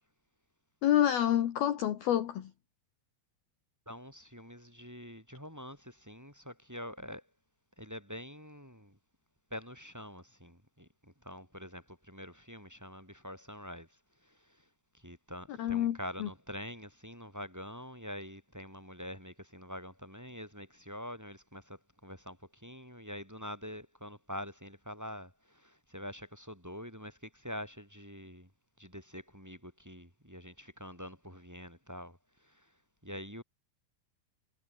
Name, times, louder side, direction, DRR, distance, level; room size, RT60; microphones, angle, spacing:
voice 1, 0.8-2.5 15.6-16.3, left 11 dB, 60° left, 3.1 m, -28 dB
voice 2, 3.8-7.2 7.8-9.0 9.5-13.9 14.2-14.6 14.9-28.5 28.8-32.7 33.0-33.4, equal, 5° right, 6.8 m, -45 dB
omnidirectional pair, 5.7 m